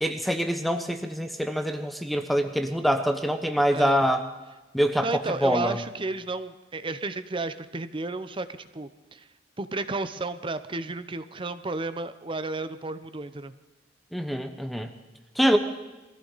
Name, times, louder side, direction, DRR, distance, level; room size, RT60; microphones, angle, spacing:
voice 1, 0.0-4.2 4.7-5.8 14.1-14.9 15.4-15.6, equal, ahead, 6 dB, 0.9 m, -25 dB
voice 2, 5.0-9.3 9.6-13.5, right 3 dB, 30° right, 12 dB, 0.7 m, -32 dB
23.0 x 15.5 x 4.1 m, 1.1 s
head